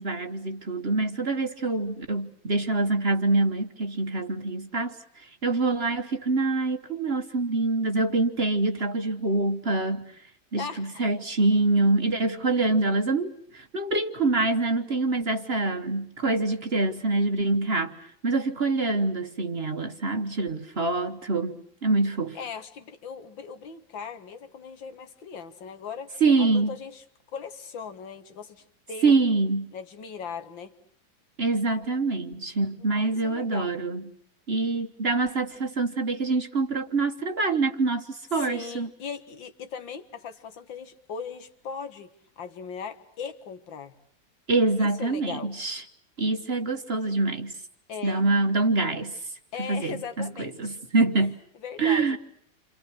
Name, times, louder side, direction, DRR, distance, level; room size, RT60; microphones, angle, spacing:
voice 1, 0.0-10.2 10.5-22.4 26.2-26.8 29.0-29.7 31.4-34.1 34.5-38.9 44.5-45.8 46.2-47.5 48.0-49.3 49.6-51.4 51.8-52.2, right 3 dB, 40° right, 1.2 m, -25 dB
voice 2, 10.6-11.1 22.4-27.0 27.3-29.1 29.7-30.7 32.9-33.7 38.3-42.1 42.4-43.9 44.8-45.5 47.9-48.2 49.5-50.8 51.2-51.3 51.6-52.2, left 6 dB, 90° left, 2.3 m, -39 dB
29.5 x 27.0 x 6.2 m
omnidirectional pair, 2.0 m